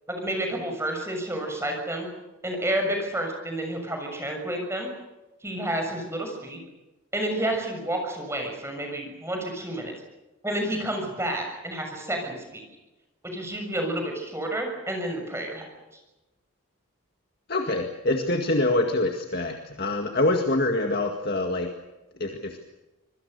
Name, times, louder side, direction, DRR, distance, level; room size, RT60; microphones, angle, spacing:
voice 1, 0.1-2.1 2.4-4.9 5.4-6.6 7.1-9.9 10.4-12.6 13.2-15.6, right 1 dB, 10° right, 3 dB, 6.7 m, -30 dB
voice 2, 17.5-21.7 22.2-22.6, left 2 dB, 45° left, 3 dB, 2.0 m, -25 dB
26.5 x 23.5 x 6.8 m, 1.1 s
head